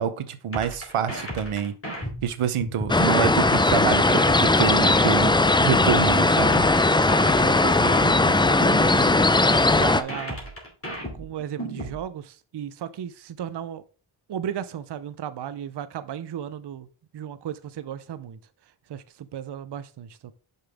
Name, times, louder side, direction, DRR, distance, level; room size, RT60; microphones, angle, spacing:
voice 1, 0.0-1.8 2.2-5.4 5.6-6.7, right 8 dB, 90° right, 0.8 m, -27 dB
sound 1, 0.5-3.0 3.5-6.0 6.5-9.0 9.5-12.0, right 1 dB, 25° left, 2.5 m, -34 dB
sound 2, 2.9-10.0, left 2 dB, 10° left, 0.4 m, -19 dB
voice 2, 7.0-9.4 9.8-10.4 10.9-13.8 14.3-16.9 17.1-18.4 18.9-20.3, right 9 dB, 55° right, 0.6 m, -35 dB
6.8 x 5.6 x 3.5 m
wide cardioid pair, 80°, 49 cm